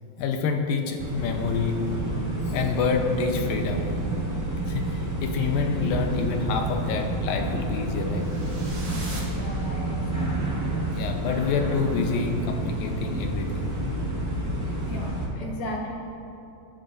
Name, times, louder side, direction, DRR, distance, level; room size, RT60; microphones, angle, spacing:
voice 1, 0.2-1.8 2.4-4.0 4.7-8.3 10.9-13.7, left 5 dB, 85° left, 4 dB, 2.7 m, -27 dB
sound 1, 1.0-15.3, right 1 dB, 15° right, 0.9 m, -29 dB
sound 2, 8.1-10.3, right 2 dB, 35° right, 2.1 m, -42 dB
voice 2, 9.3-10.6 14.9-15.9, left 1 dB, 65° left, -3 dB, 3.1 m, -36 dB
22.5 x 10.5 x 2.7 m, 2.9 s
omnidirectional pair, 4.0 m